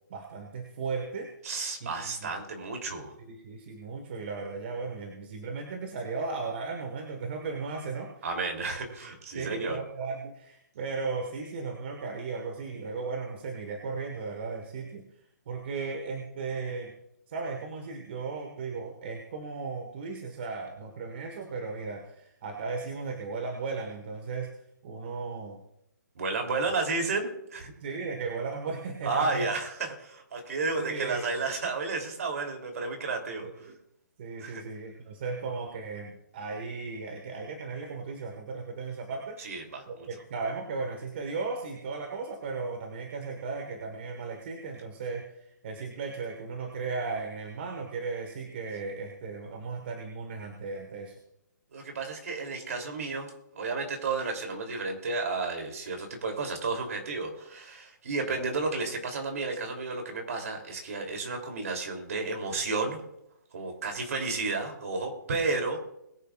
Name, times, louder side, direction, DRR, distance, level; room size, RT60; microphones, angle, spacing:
voice 1, 0.1-1.3 1.8-1.9 2.2-2.3 3.2-8.1 9.3-15.0 15.5-16.9 17.3-24.5 24.8-25.6 27.8-29.5 30.8-31.2 33.6-33.8 34.2-51.2, right 4 dB, 35° right, 3 dB, 1.5 m, -36 dB
voice 2, 1.4-3.1 8.2-9.8 26.1-27.7 29.0-33.7 34.4-34.6 39.4-40.1 51.7-63.0 63.5-65.9, right 3 dB, 50° right, 3 dB, 3.1 m, -32 dB
21.0 x 9.3 x 2.4 m, 0.80 s
hypercardioid pair, 170°, 10 cm